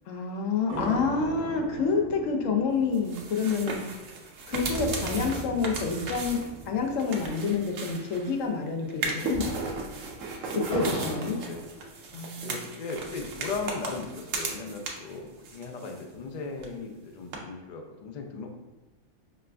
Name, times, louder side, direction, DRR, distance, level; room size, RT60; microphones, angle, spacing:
voice 1, 0.1-3.8 4.5-6.4 6.7-9.6 10.5-11.4 12.1-12.5, left 5 dB, 85° left, 3 dB, 1.0 m, -28 dB
sound 1, 0.7-8.3 8.5-8.6 9.1-12.5 13.0-14.0, right 2 dB, 35° right, 1.4 m, -39 dB
sound 2, 2.9-8.4 8.9-15.2 15.4-16.3 16.6-16.7 17.3-17.4, right 3 dB, 90° right, 1.0 m, -36 dB
voice 2, 10.6-11.6 12.4-18.5, left 4 dB, 65° left, 3 dB, 0.4 m, -37 dB
5.6 x 2.4 x 2.2 m, 1.2 s
omnidirectional pair, 1.3 m